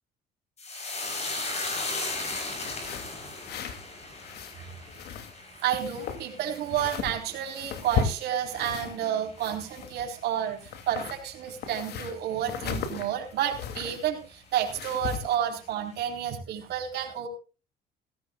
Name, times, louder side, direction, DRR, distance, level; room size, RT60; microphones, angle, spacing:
sound 1, 0.6-9.2 9.5-10.1 10.4-10.7, left 2 dB, 40° left, 7.0 m, -37 dB
sound 2, 1.5-2.1 2.6-3.9 4.1-5.4 5.7-9.1 9.4-10.3 10.6-14.1 14.5-15.4, left 7 dB, 70° left, 2.7 m, -36 dB
voice 1, 5.6-17.3, right 10 dB, 75° right, 3 dB, 4.1 m, -30 dB
18.5 x 16.0 x 2.4 m, 0.34 s
cardioid pair, 110°, 17 cm